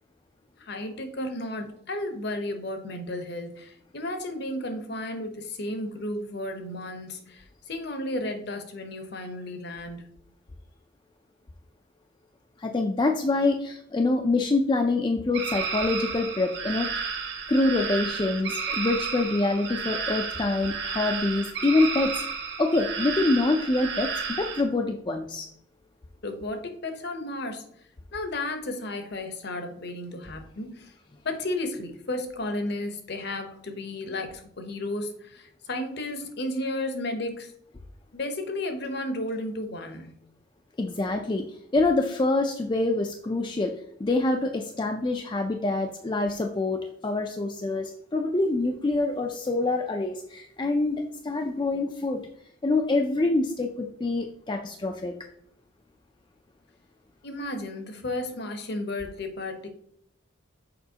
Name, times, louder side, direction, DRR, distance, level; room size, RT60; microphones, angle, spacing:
voice 1, 0.6-10.1 26.2-27.6 28.1-30.9 31.2-37.5 38.1-40.1 57.2-59.7, left 1 dB, 50° left, 6 dB, 0.8 m, -33 dB
voice 2, 12.6-16.9 17.5-22.1 22.6-25.5 40.8-41.4 41.7-43.8 44.0-52.2 52.6-55.1, left 2 dB, 20° left, 4 dB, 0.3 m, -25 dB
sound 1, 15.3-24.6, right 5 dB, 55° right, 1.1 m, -32 dB
6.7 x 5.0 x 2.8 m, 0.70 s
head